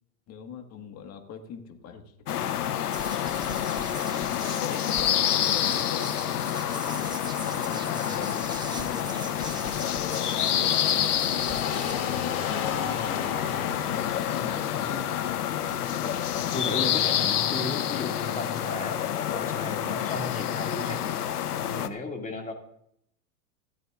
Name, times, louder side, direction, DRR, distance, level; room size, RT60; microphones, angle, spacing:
voice 1, 0.3-2.7 3.8-7.0 7.6-8.4 8.7-9.3 10.4-11.3 12.7-15.1, left 6 dB, 35° left, 6 dB, 1.7 m, -41 dB
sound 1, 2.3-21.9, left 10 dB, 90° left, 0.9 m, -28 dB
sound 2, 2.9-11.9, right 3 dB, 10° right, 1.1 m, -42 dB
sound 3, 7.0-16.6, left 7 dB, 55° left, 2.6 m, -38 dB
voice 2, 16.5-21.0 21.6-22.5, left 2 dB, 15° left, 2 dB, 2.3 m, -35 dB
16.0 x 12.5 x 2.5 m, 0.73 s
hypercardioid pair, 110°, 45 cm